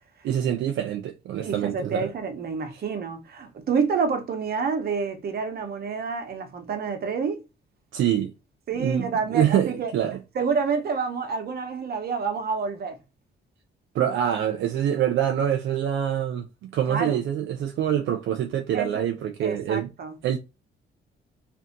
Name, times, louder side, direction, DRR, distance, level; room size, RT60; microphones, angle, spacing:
voice 1, 0.2-2.1 7.9-8.3 8.8-10.2 13.9-19.9 20.2-20.4, right 10 dB, 75° right, 0.4 m, -25 dB
voice 2, 1.4-7.4 8.7-9.9 10.3-13.0 16.9-17.2 18.7-19.0 19.4-20.1, right 5 dB, 50° right, 0.8 m, -28 dB
2.6 x 2.5 x 2.6 m
cardioid pair, 90°, 20 cm